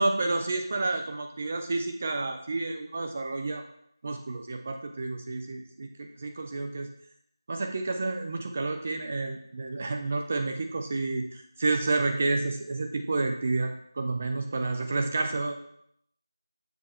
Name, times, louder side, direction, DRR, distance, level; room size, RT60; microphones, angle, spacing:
voice 1, 0.0-3.6 4.0-6.9 7.5-15.6, right 3 dB, 20° right, 5 dB, 0.3 m, -30 dB
6.8 x 3.3 x 4.2 m, 0.72 s
figure-of-eight pair, 175°, 2 cm